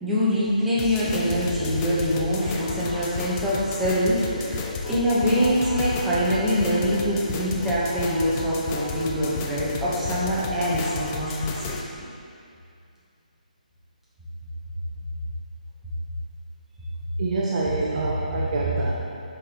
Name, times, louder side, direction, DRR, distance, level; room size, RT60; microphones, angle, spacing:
voice 1, 0.0-11.8 18.2-18.4, equal, 5° right, -10 dB, 1.0 m, -24 dB
sound 1, 0.8-11.8, left 4 dB, 20° left, 0.4 m, -32 dB
voice 2, 17.2-18.9, right 3 dB, 45° right, -4 dB, 0.6 m, -25 dB
6.3 x 5.3 x 3.0 m, 2.5 s
hypercardioid pair, 160°, 5 cm